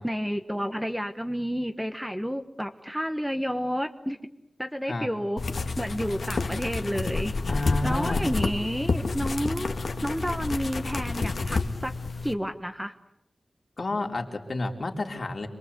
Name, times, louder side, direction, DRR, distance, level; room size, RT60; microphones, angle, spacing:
voice 1, 0.0-4.2 4.6-5.4 5.8-7.4 7.8-9.7 10.0-11.9 12.2-12.9, equal, 5° right, 7 dB, 1.2 m, -30 dB
sound 1, 5.4-12.3, left 3 dB, 70° left, 2.1 m, -29 dB
voice 2, 7.5-8.2 13.8-15.5, left 2 dB, 50° left, 2 dB, 3.5 m, -30 dB
27.5 x 22.5 x 8.2 m, 0.85 s
wide cardioid pair, 105°, 0 cm